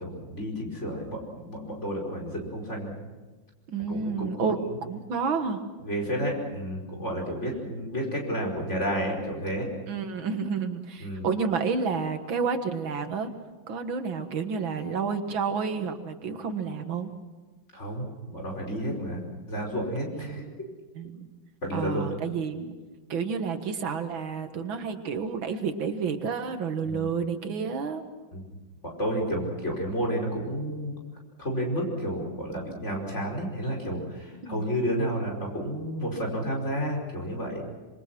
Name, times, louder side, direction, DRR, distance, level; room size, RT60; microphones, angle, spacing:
voice 1, 0.0-2.9 3.9-4.8 5.8-9.7 11.0-11.3 17.7-19.2 19.5-20.4 21.6-22.0 26.9-27.1 28.3-28.5 28.8-31.0 31.4-37.6, equal, 35° left, 0 dB, 5.5 m, -31 dB
voice 2, 3.7-4.6 4.9-5.6 9.9-13.3 13.7-17.1 20.2-20.4 21.0-21.3 21.7-22.7 23.1-28.0 34.4-34.7, right 5 dB, 80° right, 7 dB, 2.3 m, -30 dB
26.0 x 24.0 x 6.1 m, 1.3 s
omnidirectional pair, 2.1 m